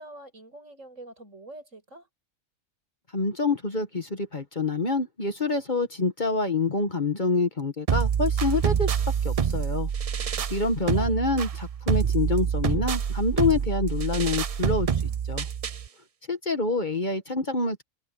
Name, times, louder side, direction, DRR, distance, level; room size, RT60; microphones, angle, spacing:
voice 1, 0.0-2.1 10.7-11.2, right 1 dB, 70° right, 8.1 m, -45 dB
voice 2, 3.1-9.0 9.2-9.9 10.5-14.9 15.3-15.5 16.3-17.8, left 3 dB, 35° left, 1.6 m, -26 dB
sound 1, 7.9-15.9, right 7 dB, 50° right, 0.4 m, -26 dB
omnidirectional pair, 1.4 m